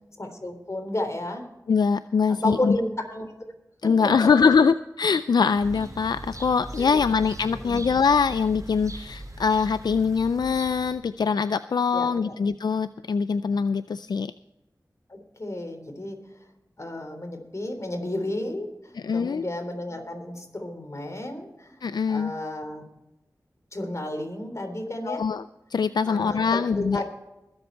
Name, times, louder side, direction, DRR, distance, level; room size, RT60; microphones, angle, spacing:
voice 1, 0.2-1.4 2.3-3.3 3.8-4.5 6.8-7.1 7.6-7.9 11.9-12.4 15.1-16.2 16.8-21.8 22.1-22.8 23.7-25.2 26.1-27.1, left 1 dB, 45° left, 4 dB, 3.6 m, -32 dB
voice 2, 1.7-2.8 3.8-14.3 19.0-19.4 21.8-22.3 25.1-25.4 25.7-27.0, left 5 dB, 80° left, 13 dB, 0.4 m, -23 dB
sound 1, 5.5-10.9, right 1 dB, 50° right, 4.7 m, -40 dB
21.0 x 8.0 x 4.5 m, 0.93 s
cardioid pair, 40°, 7 cm